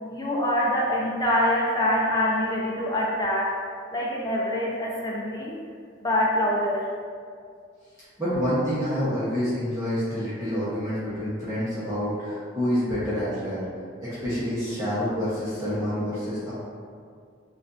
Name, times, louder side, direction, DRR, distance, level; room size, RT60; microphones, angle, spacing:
voice 1, 0.1-3.5 3.9-5.6 6.0-6.9, left 1 dB, 20° left, -4 dB, 0.7 m, -25 dB
voice 2, 8.2-13.6 14.0-16.5, equal, 20° right, -12 dB, 1.0 m, -27 dB
6.4 x 2.5 x 2.6 m, 2.2 s
head